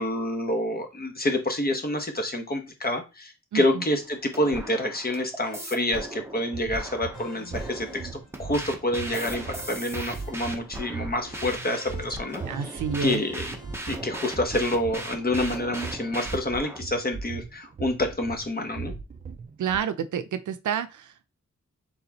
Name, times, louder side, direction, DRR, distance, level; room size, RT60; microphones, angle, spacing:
voice 1, 0.0-13.6 13.9-19.0, left 1 dB, 30° left, 1.0 m, -28 dB
voice 2, 3.5-3.8 12.4-13.2 19.6-21.3, right 7 dB, 90° right, 0.5 m, -29 dB
sound 1, 4.0-16.8, right 1 dB, 10° right, 0.7 m, -38 dB
sound 2, 5.4-13.8, left 4 dB, 80° left, 1.3 m, -49 dB
sound 3, 6.2-19.8, right 5 dB, 30° right, 0.4 m, -39 dB
4.2 x 3.6 x 2.8 m
wide cardioid pair, 105°, 29 cm